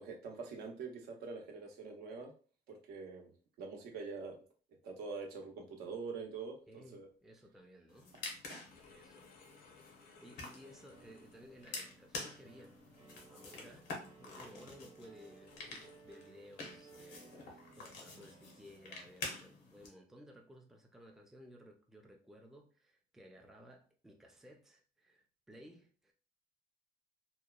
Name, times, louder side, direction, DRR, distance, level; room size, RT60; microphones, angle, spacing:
voice 1, 0.0-2.3 2.7-4.4 4.8-7.1, right 4 dB, 75° right, 0.7 m, -45 dB
sound 1, 6.2-6.4 8.5-11.7 12.5-12.8 13.4-13.5 14.3-14.4 15.4-16.0, left 4 dB, 60° left, 0.6 m, -62 dB
voice 2, 6.7-8.1 8.9-9.3 10.0-12.8 13.3-26.1, equal, ahead, 0.4 m, -57 dB
sound 2, 7.9-19.9, left 3 dB, 85° left, 0.8 m, -49 dB
sound 3, 10.9-19.2, right 3 dB, 35° right, 0.9 m, -61 dB
2.9 x 2.1 x 2.3 m
cardioid pair, 110°, 17 cm